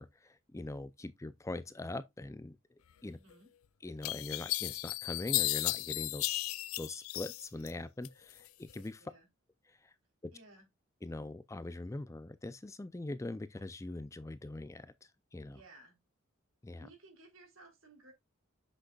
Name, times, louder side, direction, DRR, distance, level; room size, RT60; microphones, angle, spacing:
voice 1, 0.0-2.6 3.0-3.2 3.8-9.0 9.7-9.9 10.2-10.3 11.0-14.9 15.3-15.6 16.6-16.9, left 2 dB, 15° left, 0.4 m, -42 dB
voice 2, 3.1-3.5 9.0-9.3 10.3-10.7 15.5-16.0 16.8-18.1, right 2 dB, 70° right, 3.5 m, -58 dB
sound 1, 3.3-3.4 4.0-7.7 8.0-8.8, left 18 dB, 85° left, 0.4 m, -35 dB
7.8 x 6.3 x 2.3 m
head